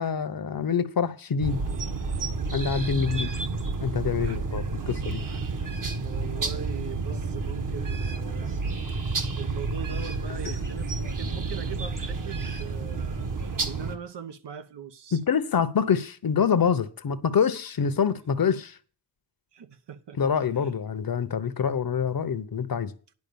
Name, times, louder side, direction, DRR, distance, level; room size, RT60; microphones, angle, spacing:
voice 1, 0.0-1.6 2.5-3.3 3.8-5.2 10.4-10.6 15.1-18.8 20.2-22.9, left 7 dB, 55° left, 1.0 m, -26 dB
sound 1, 1.4-14.0, right 4 dB, 50° right, 1.5 m, -30 dB
voice 2, 5.2-5.6 6.0-8.6 8.9-9.1 9.4-15.2 19.5-20.2 20.6-20.7, right 7 dB, 75° right, 1.1 m, -41 dB
11.0 x 5.0 x 6.9 m
cardioid pair, 75°, 42 cm